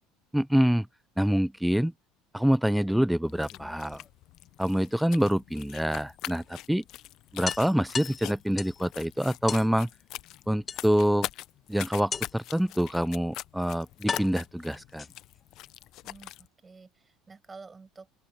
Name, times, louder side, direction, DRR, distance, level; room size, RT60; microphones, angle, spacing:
voice 1, 0.3-0.9 1.2-1.9 2.3-4.0 4.6-6.8 7.3-9.9 10.5-11.3 11.7-15.0, equal, ahead, 0.6 m, -26 dB
sound 1, 3.3-16.5, left 15 dB, 60° left, 0.8 m, -43 dB
sound 2, 3.4-4.5 6.0-6.1 6.4-6.5 6.8-6.9 7.4-8.8 9.5-9.7 10.7-11.2 12.1-12.5 13.4-13.5 14.1-15.4, left 6 dB, 30° left, 1.9 m, -36 dB
voice 2, 16.0-18.2, right 4 dB, 20° right, 6.3 m, -50 dB
open air
supercardioid pair, 110°, 0 cm